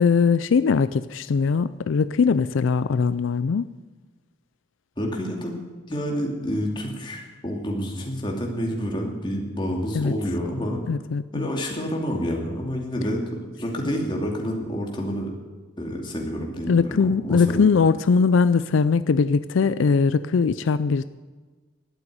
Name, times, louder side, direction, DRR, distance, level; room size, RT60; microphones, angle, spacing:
voice 1, 0.0-3.7 9.9-10.1 10.9-11.5 16.7-21.0, left 5 dB, 80° left, 14 dB, 0.4 m, -21 dB
voice 2, 5.0-5.5 5.9-10.8 11.3-15.3 15.8-16.7 17.0-17.7, equal, 25° left, 0 dB, 2.5 m, -28 dB
12.0 x 8.9 x 9.5 m, 1.3 s
head